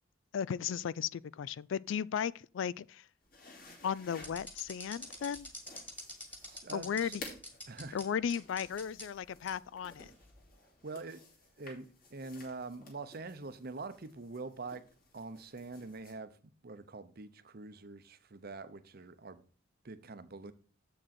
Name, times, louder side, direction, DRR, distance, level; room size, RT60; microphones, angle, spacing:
voice 1, 0.3-3.1 3.8-5.5 6.7-7.2 7.9-10.1, left 8 dB, 65° left, 0.3 m, -35 dB
sound 1, 3.2-16.1, left 3 dB, 45° left, 2.8 m, -55 dB
sound 2, 4.2-8.0 8.3-9.0 9.5-9.6 10.2-10.5, left 1 dB, 10° left, 1.7 m, -45 dB
voice 2, 6.5-7.2 7.7-8.0 10.8-11.2 11.6-14.9 15.1-19.5 19.8-20.5, right 3 dB, 50° right, 0.7 m, -45 dB
7.8 x 6.3 x 4.3 m
head